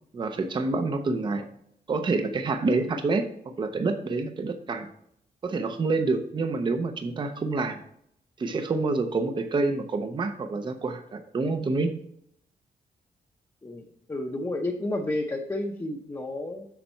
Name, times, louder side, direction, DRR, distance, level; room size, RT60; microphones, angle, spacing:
voice 1, 0.1-1.5 1.9-3.3 3.6-4.9 5.4-7.8 8.4-12.0, right 3 dB, 30° right, 8 dB, 0.6 m, -27 dB
voice 2, 13.6-16.7, left 1 dB, 20° left, 0 dB, 0.7 m, -31 dB
7.1 x 6.6 x 4.4 m, 0.71 s
wide cardioid pair, 160°, 16 cm